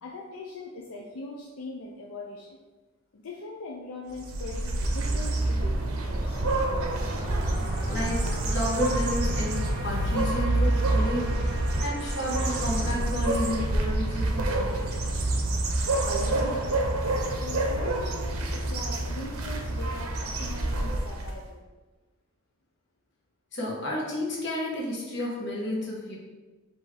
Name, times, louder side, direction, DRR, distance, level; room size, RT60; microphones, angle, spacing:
voice 1, 0.0-2.6 3.1-6.4 11.8-11.9 16.4-16.9 17.4-21.6, left 2 dB, 80° left, -1 dB, 0.5 m, -41 dB
sound 1, 4.1-21.4, right 2 dB, 85° right, 0.6 m, -27 dB
sound 2, 5.3-14.4, right 1 dB, 30° right, 0.8 m, -41 dB
voice 2, 7.5-15.5 23.5-26.2, left 1 dB, 55° left, -4 dB, 1.2 m, -32 dB
5.5 x 2.6 x 3.3 m, 1.2 s
head